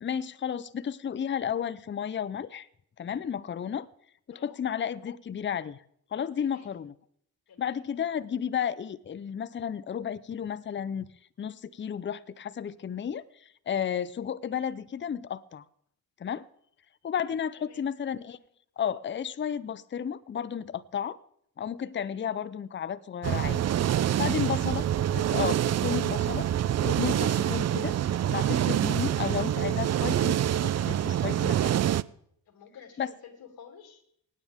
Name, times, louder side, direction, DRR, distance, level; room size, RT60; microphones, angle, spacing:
voice 1, 0.0-2.7 3.0-3.9 4.3-5.8 6.1-6.9 7.6-11.1 11.4-13.2 13.7-15.6 16.2-16.5 17.0-18.4 18.8-21.2 21.6-23.6 24.2-24.9 25.1-26.5 26.8-27.9 28.3-31.7 33.0-33.1, left 8 dB, 30° left, 16 dB, 0.6 m, -32 dB
voice 2, 6.4-6.7 7.5-7.8 17.6-17.8 24.2-24.6 32.5-34.0, left 7 dB, 70° left, 3 dB, 2.9 m, -51 dB
sound 1, 23.2-32.0, right 11 dB, 45° right, 0.5 m, -26 dB
25.5 x 9.5 x 3.6 m, 0.68 s
cardioid pair, 85°, 38 cm